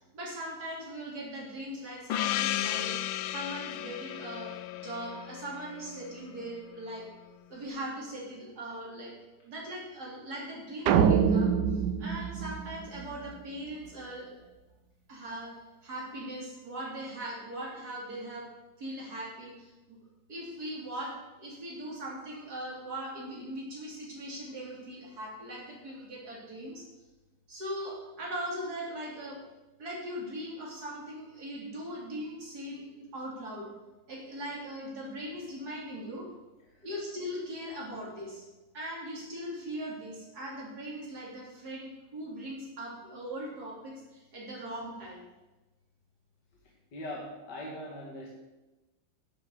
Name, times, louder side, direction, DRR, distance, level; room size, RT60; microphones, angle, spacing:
voice 1, 0.1-3.0 3.3-7.1 7.5-9.1 9.4-14.5 15.1-15.6 15.8-18.5 18.8-20.0 20.3-26.9 27.5-29.4 29.8-33.7 34.1-36.3 36.8-38.4 38.7-45.3, right 1 dB, 50° right, -3 dB, 3.8 m, -40 dB
Gong, 2.1-6.4, left 13 dB, 90° left, 1.4 m, -34 dB
sound 1, 10.9-13.3, right 7 dB, 70° right, 1.2 m, -25 dB
voice 2, 46.9-48.3, left 1 dB, 60° left, -2 dB, 2.3 m, -41 dB
11.5 x 10.5 x 4.9 m, 1.1 s
omnidirectional pair, 2.1 m